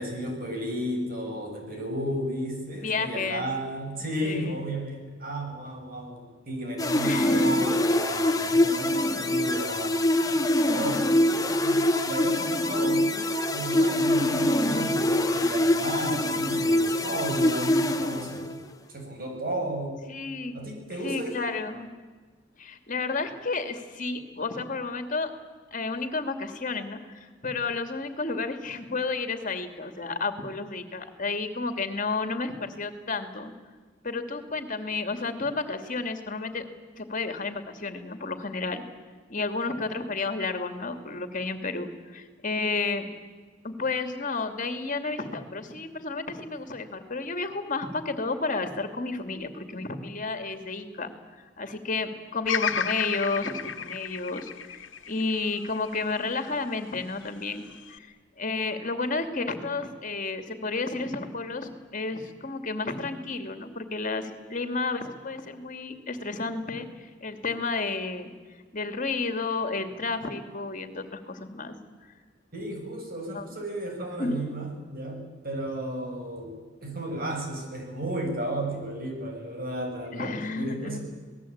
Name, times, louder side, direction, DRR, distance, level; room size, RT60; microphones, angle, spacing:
voice 1, 0.0-13.1 13.5-18.6 18.9-20.1 20.5-21.5 72.5-81.0, right 1 dB, 50° right, 2 dB, 7.5 m, -34 dB
voice 2, 2.8-3.4 4.2-4.6 7.0-7.7 13.1-13.3 20.1-20.6 21.0-21.9 22.6-25.3 25.7-33.5 34.0-36.6 37.0-38.8 39.3-43.1 43.6-51.1 51.6-58.1 58.4-68.3 68.7-71.8 73.3-73.4 74.2-74.3 80.1-81.0, left 3 dB, 45° left, 8 dB, 2.6 m, -31 dB
sound 1, 6.8-18.7, left 1 dB, 20° left, 1.6 m, -24 dB
Bird vocalization bird call bird song, 52.5-56.7 57.2-58.0, left 7 dB, 85° left, 1.6 m, -33 dB
27.5 x 19.5 x 8.8 m, 1.4 s
head